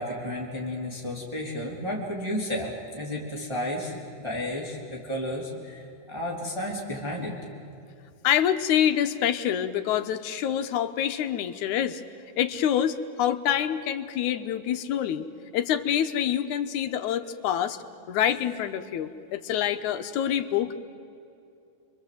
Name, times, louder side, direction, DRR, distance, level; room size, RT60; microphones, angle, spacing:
voice 1, 0.0-7.3, left 1 dB, 10° right, -4 dB, 3.2 m, -32 dB
voice 2, 8.2-12.0 12.4-15.3 15.5-17.8 18.1-20.8, left 10 dB, 75° left, 9 dB, 2.3 m, -26 dB
29.0 x 23.5 x 7.9 m, 2.6 s
omnidirectional pair, 3.6 m